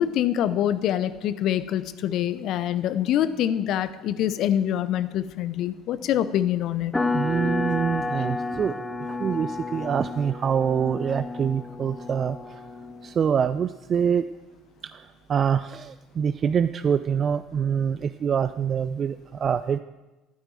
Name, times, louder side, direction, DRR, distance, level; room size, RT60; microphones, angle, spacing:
voice 1, 0.0-6.9, left 11 dB, 55° left, 14 dB, 0.8 m, -25 dB
sound 1, 6.9-13.1, left 3 dB, 10° left, 2.0 m, -31 dB
voice 2, 7.1-8.7 9.2-12.4 13.0-14.2 15.3-19.8, right 7 dB, 40° right, 12 dB, 0.5 m, -25 dB
13.5 x 9.8 x 7.7 m, 1.1 s
figure-of-eight pair, 60°, 0 cm